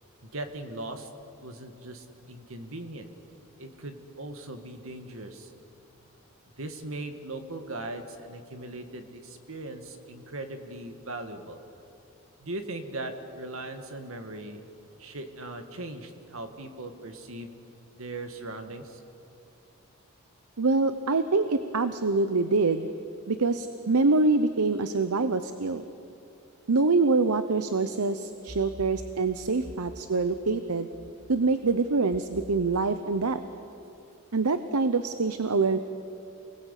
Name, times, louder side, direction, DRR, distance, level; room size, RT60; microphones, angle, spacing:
voice 1, 0.2-1.1 1.4-3.1 3.6-5.5 6.6-11.6 12.4-14.6 15.0-17.5 17.9-19.0, right 2 dB, 65° right, 7 dB, 2.1 m, -39 dB
voice 2, 20.6-22.9 23.3-25.8 26.7-30.9 31.3-33.4 34.3-35.8, right 3 dB, 85° right, 10 dB, 0.9 m, -25 dB
28.5 x 20.5 x 8.4 m, 2.7 s
head